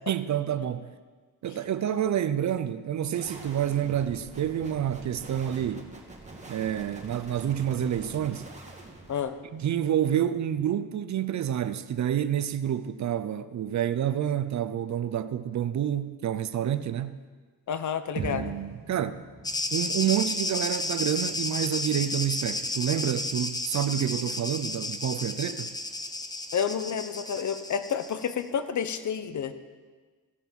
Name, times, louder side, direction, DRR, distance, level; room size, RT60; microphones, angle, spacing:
voice 1, 0.1-0.9 1.4-5.9 6.5-8.5 9.4-17.2 18.2-19.2 19.7-25.7, right 10 dB, 50° right, 0.6 m, -28 dB
sound 1, 3.1-9.8, right 2 dB, 20° right, 2.0 m, -45 dB
voice 2, 17.7-18.6 26.5-29.5, left 7 dB, 50° left, 0.8 m, -30 dB
sound 2, 18.2-22.5, right 3 dB, 65° right, 1.5 m, -42 dB
sound 3, 19.4-28.3, left 2 dB, 10° left, 0.7 m, -32 dB
16.0 x 5.4 x 6.1 m
cardioid pair, 100°, 37 cm